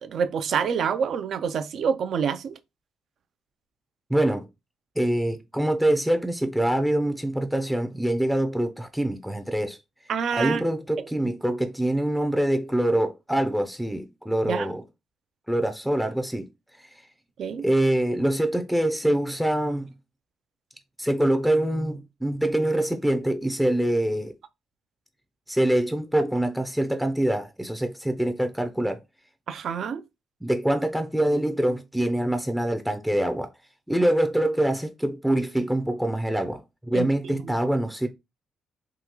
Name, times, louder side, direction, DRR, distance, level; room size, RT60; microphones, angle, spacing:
voice 1, 0.0-2.6 10.1-10.6 11.0-11.1 14.4-14.7 17.4-17.6 29.5-30.0 36.9-37.5, right 7 dB, 65° right, 0.4 m, -27 dB
voice 2, 4.1-4.5 5.0-9.8 10.3-14.8 15.5-16.5 16.8-16.9 17.6-19.9 21.0-24.3 25.5-29.0 30.4-33.5 33.9-38.1, right 1 dB, 5° right, 0.5 m, -25 dB
3.5 x 2.3 x 3.0 m
cardioid pair, 90°, 0 cm